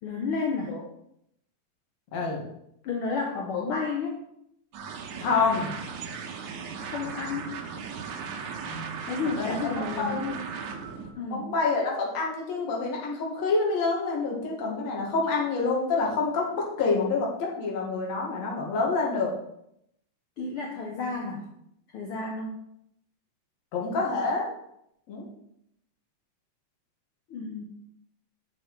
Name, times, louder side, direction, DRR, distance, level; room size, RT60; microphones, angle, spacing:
voice 1, 0.0-0.7 2.8-4.2 6.9-7.5 9.1-10.5 11.2-11.5 20.4-21.5 21.9-22.6 27.3-27.6, left 4 dB, 80° left, 1 dB, 1.2 m, -31 dB
voice 2, 2.1-2.4 3.5-3.6 5.2-5.7 8.7-8.9 9.4-9.6 10.0-10.3 11.3-19.3 23.7-24.5 25.1-25.3, left 4 dB, 55° left, -2 dB, 2.8 m, -27 dB
sound 1, 4.7-11.1, right 6 dB, 70° right, 2.2 m, -37 dB
8.7 x 6.0 x 4.7 m, 0.76 s
omnidirectional pair, 3.9 m